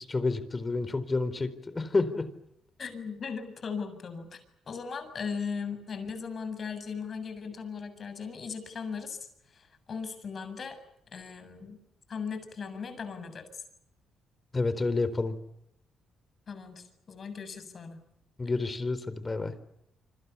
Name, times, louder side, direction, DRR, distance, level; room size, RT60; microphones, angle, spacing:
voice 1, 0.0-2.2 14.5-15.3 18.4-19.5, left 3 dB, 25° left, 13 dB, 4.1 m, -29 dB
voice 2, 2.8-4.4 4.7-9.2 9.5-10.8 11.1-11.8 12.1-13.6 16.5-18.0, left 5 dB, 45° left, 9 dB, 7.4 m, -38 dB
28.0 x 26.0 x 7.2 m, 0.79 s
cardioid pair, 90°, 0 cm